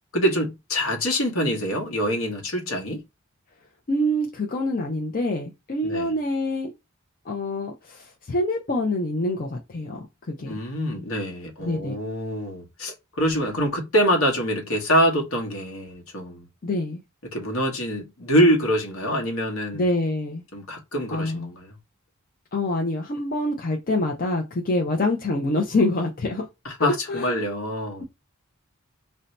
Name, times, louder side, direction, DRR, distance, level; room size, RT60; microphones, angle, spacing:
voice 1, 0.1-3.0 5.8-6.1 10.5-16.5 17.3-19.8 20.5-21.7 26.6-28.0, equal, 65° left, 1.1 m, -25 dB
voice 2, 3.9-6.7 7.3-10.6 11.6-12.0 16.6-17.0 19.7-20.4 21.1-21.5 22.5-26.5 26.8-27.4, left 1 dB, 40° left, 0.5 m, -26 dB
2.7 x 2.2 x 3.9 m
head